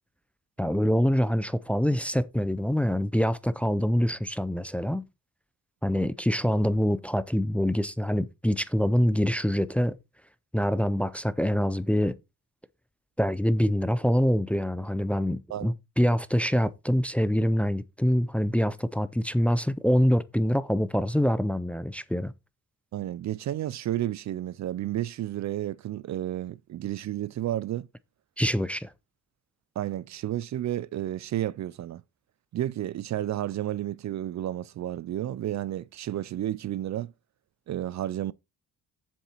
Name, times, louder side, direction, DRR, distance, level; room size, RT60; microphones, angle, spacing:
voice 1, 0.6-5.0 5.8-10.0 10.5-12.2 13.2-22.3 28.4-28.9, equal, 5° left, 0.5 m, -25 dB
voice 2, 22.9-27.9 29.8-32.0 32.5-37.1 37.7-38.3, right 13 dB, 55° right, 0.5 m, -31 dB
7.3 x 7.1 x 4.4 m
cardioid pair, 110°, 33 cm